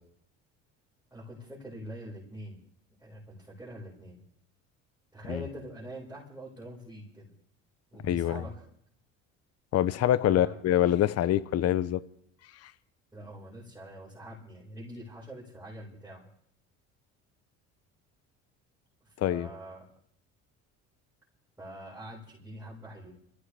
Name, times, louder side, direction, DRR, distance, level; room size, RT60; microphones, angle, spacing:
voice 1, 1.1-2.6 3.0-4.2 5.1-7.3 7.9-8.6 10.2-10.6 13.1-16.2 19.2-19.8 21.6-23.1, right 1 dB, 5° right, 5.8 m, -44 dB
voice 2, 8.0-8.4 9.7-12.0 19.2-19.5, left 12 dB, 50° left, 0.8 m, -25 dB
26.5 x 15.5 x 3.4 m
supercardioid pair, 80°, 32 cm